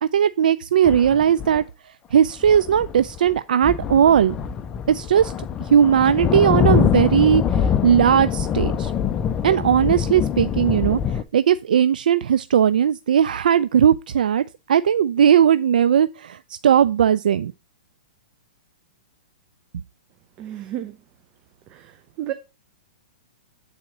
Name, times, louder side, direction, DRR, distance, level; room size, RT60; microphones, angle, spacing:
voice 1, 0.0-1.6 2.1-4.4 4.9-5.3 5.7-8.9 9.4-17.5, right 9 dB, 75° right, 0.4 m, -18 dB
sound 1, 0.8-1.6 2.3-3.4 3.6-11.2, left 8 dB, 20° left, 0.5 m, -24 dB
voice 2, 20.4-21.0 21.7-22.3, right 12 dB, 30° right, 0.6 m, -32 dB
8.6 x 4.2 x 6.0 m
hypercardioid pair, 150°, 5 cm